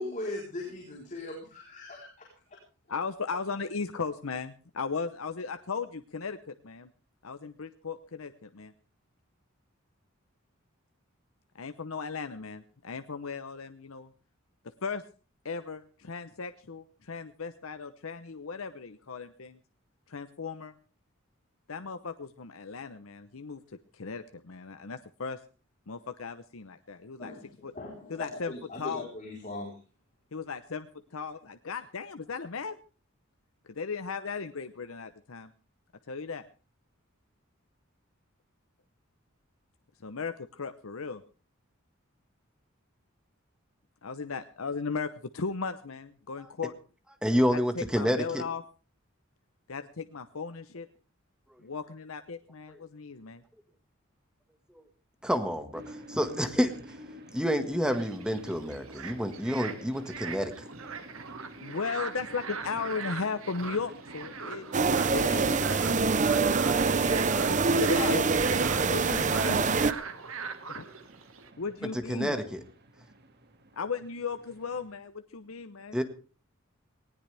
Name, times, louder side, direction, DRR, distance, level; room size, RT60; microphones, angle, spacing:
voice 1, 0.0-2.6 27.2-29.8, left 2 dB, 40° left, -1 dB, 4.1 m, -39 dB
voice 2, 2.9-6.9 7.2-8.7 11.5-14.1 14.8-15.0 15.4-19.6 20.1-20.7 21.7-23.6 23.9-25.4 25.9-27.3 27.6-27.7 28.1-29.1 30.3-30.9 31.1-32.8 33.7-35.5 36.1-36.5 40.0-41.2 44.0-46.7 47.5-48.6 49.7-50.9 51.6-53.4 61.6-66.1 67.3-68.3 68.9-69.7 70.7-70.9 71.6-72.4 73.7-76.0, left 5 dB, 85° left, 9 dB, 0.8 m, -36 dB
voice 3, 47.2-48.4 55.2-56.7 57.3-60.5 72.1-72.6 75.9-76.0, equal, 5° right, 8 dB, 1.7 m, -28 dB
sound 1, 55.7-75.0, right 1 dB, 50° right, 2.2 m, -50 dB
sound 2, 57.9-71.5, right 6 dB, 80° right, 1.8 m, -41 dB
sound 3, 64.7-69.9, right 4 dB, 35° right, 0.7 m, -25 dB
19.0 x 18.0 x 3.4 m, 0.36 s
head